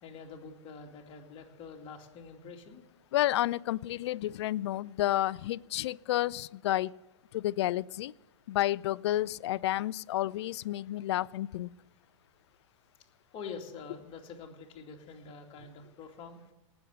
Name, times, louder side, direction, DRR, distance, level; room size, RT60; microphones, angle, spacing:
voice 1, 0.0-2.8 13.3-16.4, left 5 dB, 35° left, 2 dB, 2.4 m, -46 dB
voice 2, 3.1-6.9 7.3-8.1 8.5-11.7, left 14 dB, 55° left, 22 dB, 0.4 m, -30 dB
18.5 x 7.0 x 7.6 m, 1.0 s
hypercardioid pair, 110°, 16 cm